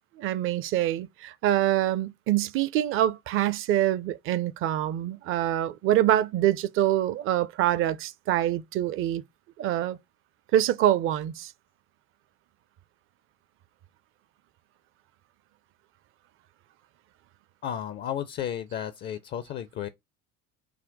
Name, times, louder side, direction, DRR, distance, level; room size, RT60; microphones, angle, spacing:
voice 1, 0.2-9.2 9.6-10.0 10.5-11.5, right 12 dB, 30° right, 0.4 m, -25 dB
voice 2, 17.6-19.9, left 10 dB, 25° left, 0.4 m, -33 dB
5.7 x 2.1 x 3.9 m
figure-of-eight pair, 60°, 42 cm